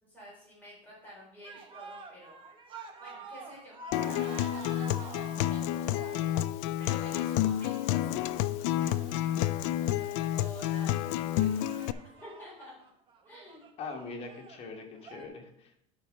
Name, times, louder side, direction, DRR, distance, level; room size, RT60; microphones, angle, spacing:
voice 1, 0.0-2.4 3.0-3.8 4.1-9.3 10.0-11.7 12.1-12.7 13.3-13.7, equal, 10° left, -6 dB, 3.7 m, -50 dB
sound 1, 1.4-15.3, right 4 dB, 30° right, 1.2 m, -48 dB
Acoustic guitar, 3.9-11.9, left 13 dB, 75° left, 0.4 m, -30 dB
voice 2, 13.8-15.8, left 4 dB, 40° left, 2 dB, 1.9 m, -42 dB
12.0 x 4.4 x 5.2 m, 0.74 s
cardioid pair, 140°, 16 cm